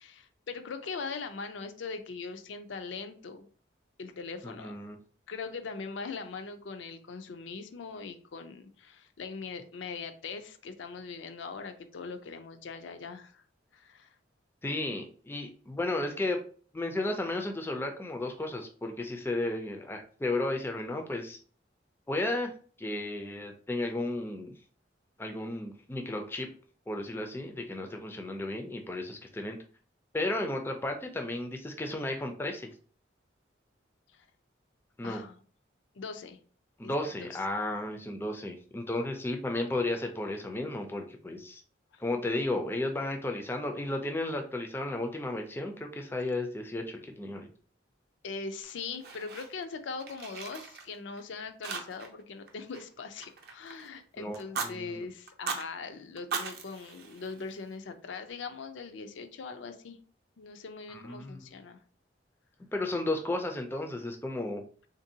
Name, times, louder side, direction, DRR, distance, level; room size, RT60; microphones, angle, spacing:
voice 1, 0.0-3.5 4.0-4.7 5.3-13.4 13.7-14.1 34.1-34.2 35.0-35.4 35.9-36.4 36.8-36.9 37.2-37.3 41.9-42.0 48.2-60.0 60.4-61.8, left 4 dB, 80° left, 0.4 m, -41 dB
voice 2, 4.4-5.0 14.6-16.4 16.7-21.4 22.1-22.5 22.8-24.5 25.2-26.5 26.9-29.6 30.1-32.7 35.0-35.2 36.8-41.6 42.0-47.5 54.2-55.0 60.9-61.5 62.7-64.6, left 2 dB, 10° left, 0.3 m, -33 dB
Fire, 48.6-49.7 50.0-51.2 51.6-52.2 52.5-53.9 54.3-54.7 55.3-55.7 56.2-57.7, right 5 dB, 55° right, 0.5 m, -39 dB
3.6 x 2.6 x 2.7 m
head